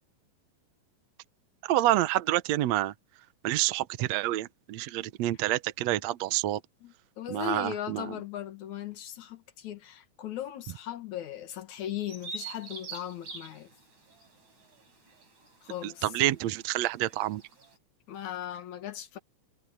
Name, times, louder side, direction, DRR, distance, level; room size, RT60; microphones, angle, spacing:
voice 1, 1.7-2.9 3.4-6.6 7.3-8.1 16.0-17.4, right 15 dB, 70° right, 1.7 m, -28 dB
voice 2, 6.8-13.7 15.6-16.1 18.1-19.2, left 11 dB, 60° left, 2.8 m, -38 dB
Bird vocalization bird call bird song, 12.1-17.8, right 4 dB, 50° right, 9.3 m, -46 dB
omnidirectional pair, 4.0 m